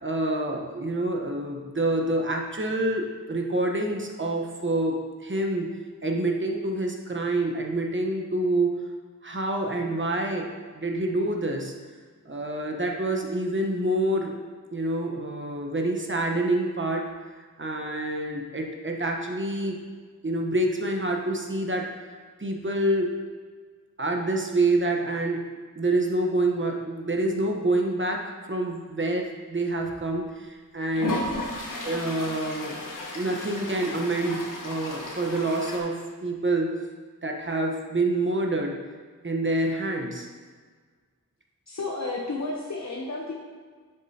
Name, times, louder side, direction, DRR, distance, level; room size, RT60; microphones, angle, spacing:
voice 1, 0.0-5.7 6.0-8.9 9.2-11.7 12.2-14.3 14.7-17.0 17.6-19.8 20.2-21.9 22.4-23.1 24.0-25.5 25.8-28.2 28.5-31.3 31.8-32.7 33.1-36.8 37.2-38.8 39.2-40.3, right 2 dB, 35° right, 1 dB, 1.1 m, -27 dB
Toilet flush, 30.0-30.1 30.9-35.8, left 2 dB, 70° left, 1.3 m, -34 dB
voice 2, 41.7-43.3, left 3 dB, 55° left, -2 dB, 0.9 m, -32 dB
7.5 x 7.2 x 2.8 m, 1.5 s
wide cardioid pair, 55°, 33 cm